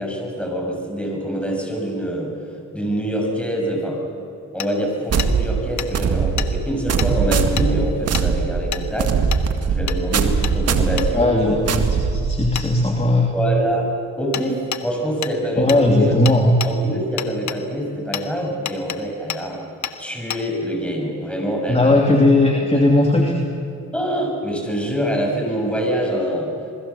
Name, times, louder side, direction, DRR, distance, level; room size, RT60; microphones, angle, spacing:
voice 1, 0.0-4.0 4.5-9.4 9.7-11.6 13.3-16.1 16.6-19.6 20.0-22.3 23.1-23.3 23.9-26.7, equal, 5° left, 1 dB, 7.1 m, -25 dB
Hammer, 4.6-4.7 5.2-5.3 5.8-5.9 6.4-6.5 7.0-7.1 7.6-7.7 8.1-8.3 8.7-8.9 9.3-9.4 9.9-10.0 10.4-10.6 11.0-11.1 12.6-12.7 14.3-14.5 14.7-14.8 15.2-15.4 15.7-15.8 16.3-16.7 17.2-17.6 18.1-18.3 18.7-19.0 19.3-19.4 19.8-20.0 20.3-20.4, left 10 dB, 70° left, 1.4 m, -28 dB
sound 1, 5.1-12.7, right 5 dB, 55° right, 2.0 m, -21 dB
voice 2, 11.1-13.3 15.6-16.6 21.7-23.3, left 2 dB, 20° left, 1 dB, 2.9 m, -17 dB
27.5 x 21.0 x 7.2 m, 2.6 s
cardioid pair, 90°, 30 cm